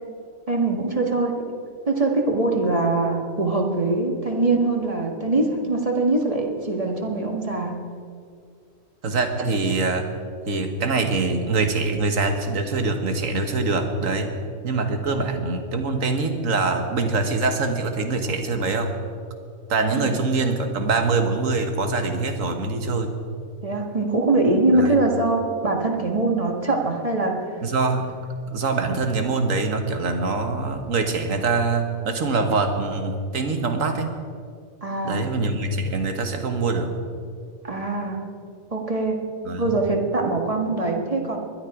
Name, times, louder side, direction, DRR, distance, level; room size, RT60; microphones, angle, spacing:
voice 1, 0.5-1.5 1.9-7.8 20.0-20.1 23.6-27.6 34.8-35.3 37.6-38.2 38.7-39.2 39.6-41.4, right 2 dB, 25° right, 2 dB, 1.7 m, -23 dB
voice 2, 9.0-10.1 10.4-14.4 14.6-18.9 19.7-23.1 24.7-24.9 27.6-28.1 28.5-34.1 35.0-36.9 39.4-39.8, right 3 dB, 75° right, 6 dB, 1.7 m, -24 dB
20.0 x 12.5 x 4.9 m, 2.3 s
omnidirectional pair, 1.4 m